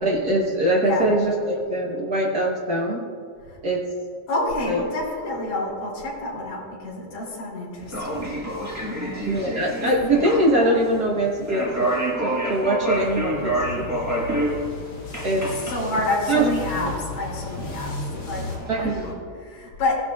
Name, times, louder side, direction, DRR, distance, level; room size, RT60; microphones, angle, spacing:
voice 1, 0.0-3.0 3.6-3.8 4.7-4.8 9.2-13.8 15.2-15.5 16.3-16.5 16.8-16.9 18.7-19.0, right 1 dB, 70° right, -3 dB, 0.9 m, -22 dB
voice 2, 4.3-8.4 8.9-9.4 9.8-9.9 15.6-17.9 18.2-18.5 18.7-19.1 19.4-20.0, left 2 dB, 65° left, -5 dB, 4.4 m, -28 dB
sound 1, 7.8-19.1, right 1 dB, 15° right, 0.5 m, -29 dB
sound 2, 12.9-18.6, left 3 dB, 45° left, 2.5 m, -35 dB
17.0 x 11.0 x 2.4 m, 2.3 s
omnidirectional pair, 3.5 m